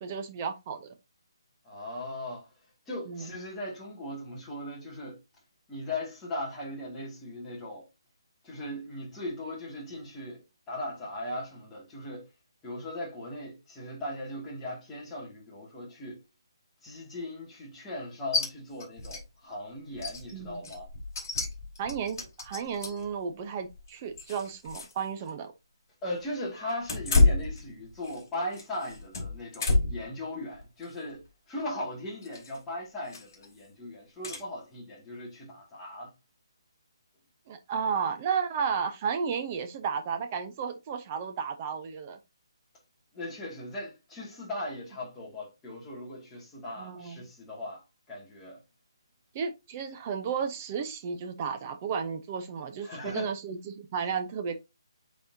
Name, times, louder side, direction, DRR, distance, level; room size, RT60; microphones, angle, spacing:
voice 1, 0.0-0.9 3.1-3.3 20.3-20.6 21.8-25.5 37.5-42.2 46.8-47.2 49.3-54.5, right 6 dB, 20° right, 0.8 m, -33 dB
voice 2, 1.6-2.5 2.9-5.2 5.7-7.9 8.4-12.3 12.6-16.2 16.8-20.9 26.0-36.1 43.1-47.8 48.1-48.6 52.8-53.3, left 1 dB, 10° left, 2.1 m, -38 dB
sound 1, 18.3-18.5 18.8-19.2 19.5-19.6 19.9-23.1 23.6-25.0 25.3-25.4 26.8-28.2 28.5-30.1 30.5-30.9 32.2-32.6 33.1-33.4 34.2-34.4, left 3 dB, 35° left, 3.4 m, -29 dB
8.4 x 4.2 x 2.7 m
hypercardioid pair, 170°, 3 cm